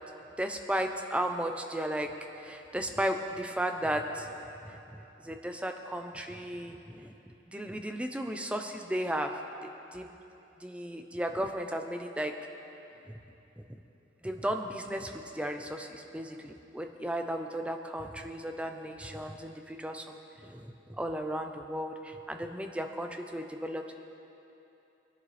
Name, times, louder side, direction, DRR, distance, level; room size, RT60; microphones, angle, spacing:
voice 1, 0.4-7.1 7.5-9.3 9.6-10.1 10.6-12.4 13.1-13.2 14.2-23.9, right 1 dB, 5° right, 5 dB, 0.6 m, -35 dB
20.5 x 11.0 x 3.3 m, 2.9 s
head